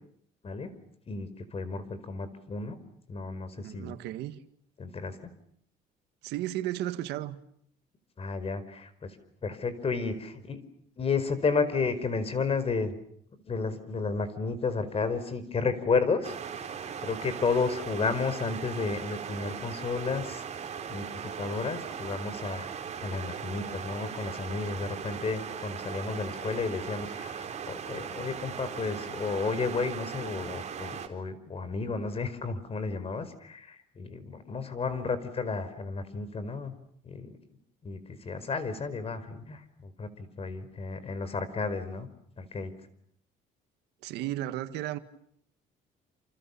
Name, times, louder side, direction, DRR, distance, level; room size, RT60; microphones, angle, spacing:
voice 1, 1.1-2.8 3.1-4.0 4.8-5.2 8.2-9.2 9.4-10.6 11.0-12.9 13.5-16.7 17.0-20.4 20.9-22.7 23.0-36.7 37.0-37.4 37.8-42.1 42.4-42.7, left 4 dB, 35° left, 4.8 m, -32 dB
voice 2, 3.6-4.4 6.2-7.4 44.0-45.0, right 14 dB, 90° right, 1.8 m, -34 dB
sound 1, 16.2-31.1, right 7 dB, 40° right, 4.1 m, -39 dB
29.0 x 28.5 x 7.1 m
cardioid pair, 110°, 17 cm